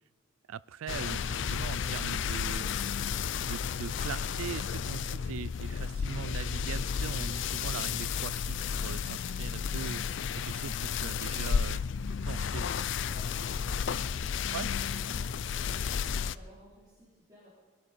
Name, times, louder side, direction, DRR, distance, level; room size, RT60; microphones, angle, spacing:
voice 1, 0.5-2.7 3.4-11.8 12.2-12.7 14.5-14.7, right 7 dB, 80° right, 20 dB, 0.4 m, -41 dB
sound 1, 0.9-16.3, left 7 dB, 60° left, 0.4 m, -32 dB
voice 2, 13.1-17.5, equal, 20° right, -10 dB, 4.1 m, -55 dB
20.0 x 12.5 x 5.2 m, 1.5 s
head